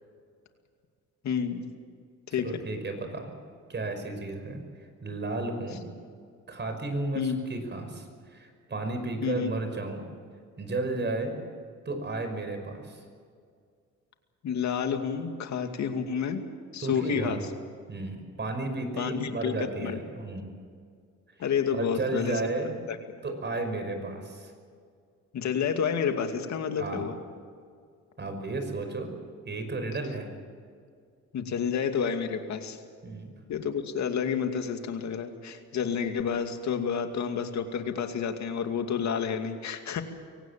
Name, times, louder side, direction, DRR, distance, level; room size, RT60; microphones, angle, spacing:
voice 1, 1.2-1.6 2.3-2.6 7.1-7.4 9.2-9.5 14.4-16.4 16.7-17.4 19.0-20.0 21.4-22.4 22.9-23.0 25.3-27.1 31.3-32.8 33.5-40.0, left 7 dB, 65° left, 6 dB, 2.4 m, -29 dB
voice 2, 2.4-3.4 3.7-4.6 5.0-5.8 6.5-10.1 10.6-11.4 11.9-13.0 16.8-17.5 17.9-20.5 21.7-22.7 23.2-24.5 26.8-27.1 28.2-29.1 29.5-30.3 33.0-33.3, right 2 dB, 35° right, 6 dB, 5.5 m, -33 dB
24.0 x 17.5 x 7.5 m, 2.1 s
cardioid pair, 90°, 30 cm